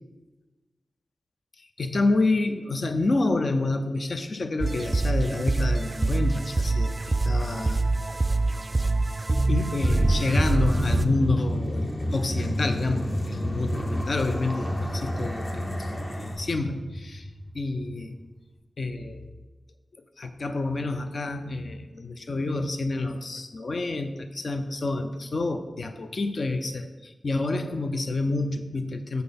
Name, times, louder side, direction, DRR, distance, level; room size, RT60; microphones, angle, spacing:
voice 1, 1.6-8.2 9.5-17.3 17.6-18.2 18.8-19.3 20.2-29.2, left 2 dB, 50° left, 8 dB, 0.5 m, -28 dB
sound 1, 4.6-11.1, right 2 dB, 25° right, 0.3 m, -25 dB
sound 2, 9.8-17.9, equal, 30° left, 0.8 m, -30 dB
7.6 x 4.3 x 5.1 m, 1.2 s
wide cardioid pair, 120°, 0 cm